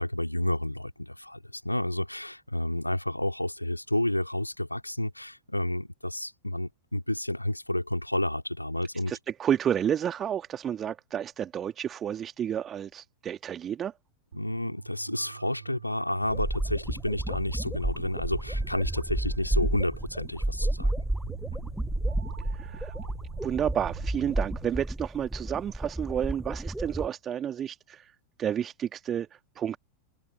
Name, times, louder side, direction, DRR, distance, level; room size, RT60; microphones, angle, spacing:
voice 1, 0.0-9.1 14.3-21.1, left 1 dB, 85° left, 3.5 m, -30 dB
voice 2, 9.1-13.9 22.5-22.9 23.4-28.1 28.4-29.8, right 9 dB, 25° right, 2.0 m, -31 dB
sound 1, 14.3-24.7, right 7 dB, 70° right, 5.3 m, -46 dB
sound 2, 16.2-27.1, right 1 dB, 5° right, 1.0 m, -32 dB
open air
figure-of-eight pair, 90°, 0 cm